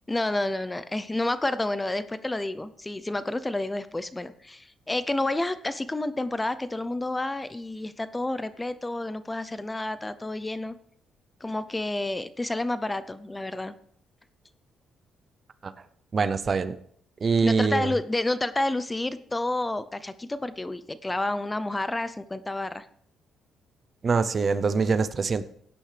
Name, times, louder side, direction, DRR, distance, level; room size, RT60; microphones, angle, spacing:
voice 1, 0.1-10.7 11.4-13.7 17.4-22.9, left 2 dB, 15° left, 14 dB, 0.5 m, -30 dB
voice 2, 16.1-16.8 17.2-18.0 24.0-25.4, right 5 dB, 40° right, 14 dB, 0.6 m, -24 dB
17.5 x 9.3 x 3.4 m, 0.66 s
cardioid pair, 105°, 0 cm